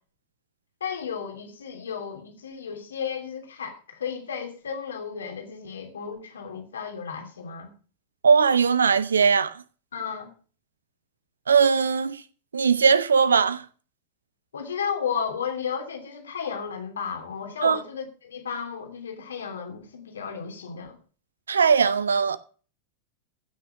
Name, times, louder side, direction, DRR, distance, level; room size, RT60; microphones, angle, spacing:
voice 1, 0.8-7.7 9.9-10.3 14.5-21.0, left 7 dB, 70° left, 2.9 m, -33 dB
voice 2, 8.2-9.6 11.5-12.2 12.5-13.6 17.6-17.8 21.5-22.4, right 6 dB, 70° right, 0.8 m, -20 dB
15.5 x 6.7 x 6.0 m
figure-of-eight pair, 90°, 0 cm